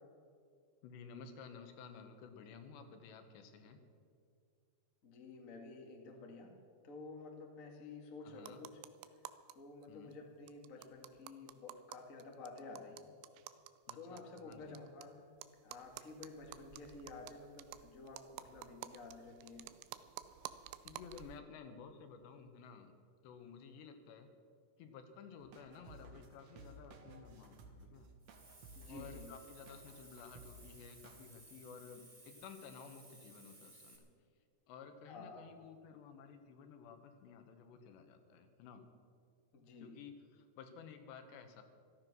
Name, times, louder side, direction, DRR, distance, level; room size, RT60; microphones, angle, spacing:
voice 1, 0.8-3.8 8.2-8.6 9.9-10.2 13.9-14.8 20.8-22.9 23.2-24.3 24.8-28.1 28.8-34.1 34.7-38.9 39.8-41.6, left 6 dB, 80° left, 7 dB, 3.4 m, -54 dB
voice 2, 5.0-6.5 6.8-8.8 9.5-13.0 13.9-15.2 15.6-19.7 28.7-29.3 35.0-35.5 39.5-40.0, left 3 dB, 50° left, 1 dB, 0.9 m, -51 dB
sound 1, 8.4-9.5 9.8-9.9 10.1-10.2 10.5-15.0 15.4-21.4, right 14 dB, 85° right, 2.8 m, -51 dB
sound 2, 25.4-31.3, right 3 dB, 65° right, 1.8 m, -57 dB
Hiss, 28.2-34.0, right 2 dB, 45° right, 0.6 m, -60 dB
15.0 x 13.5 x 6.2 m, 2.3 s
omnidirectional pair, 4.9 m